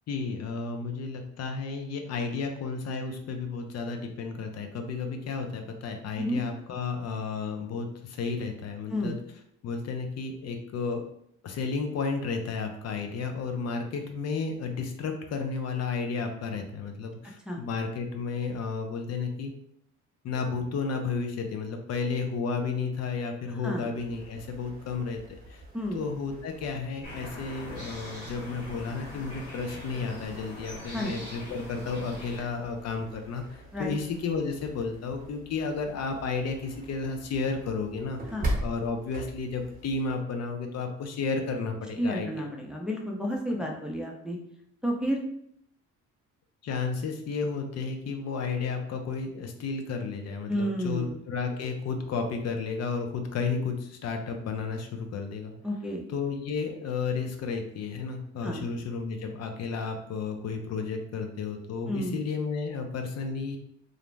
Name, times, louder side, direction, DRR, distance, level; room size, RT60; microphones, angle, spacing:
voice 1, 0.1-9.2 9.6-11.0 11.4-19.5 20.2-25.2 25.5-25.6 25.9-38.2 38.6-42.4 46.6-55.5 56.1-63.6, left 4 dB, 60° left, 5 dB, 0.5 m, -32 dB
sound 1, 23.9-40.2, right 1 dB, 30° right, 0.8 m, -42 dB
sound 2, 27.0-32.4, left 1 dB, 90° left, 1.3 m, -42 dB
voice 2, 42.0-44.4 44.8-45.2 50.5-51.2 55.6-56.0 58.4-58.7 61.9-62.2, equal, 5° right, -1 dB, 0.4 m, -31 dB
2.5 x 2.0 x 3.1 m, 0.72 s
cardioid pair, 90°, 30 cm